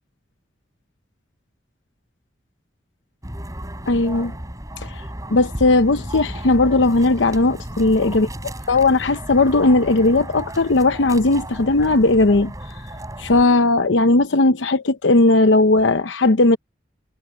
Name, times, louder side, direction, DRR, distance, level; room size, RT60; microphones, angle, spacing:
sound 1, 3.2-13.5, right 1 dB, 20° right, 7.1 m, -34 dB
voice 1, 3.9-4.3 4.8-5.0 5.3-8.3 8.7-12.5 13.2-16.6, left 2 dB, 85° left, 0.8 m, -17 dB
head